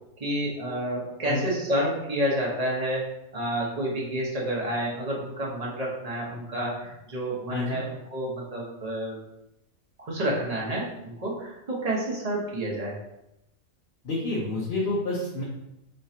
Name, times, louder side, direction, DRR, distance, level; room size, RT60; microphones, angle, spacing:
voice 1, 0.2-3.1 3.3-9.2 10.0-13.0, right 1 dB, 30° right, -4 dB, 1.0 m, -29 dB
voice 2, 7.5-7.8 14.0-15.4, left 2 dB, 55° left, -6 dB, 1.0 m, -29 dB
4.6 x 3.2 x 2.8 m, 0.87 s
omnidirectional pair, 1.4 m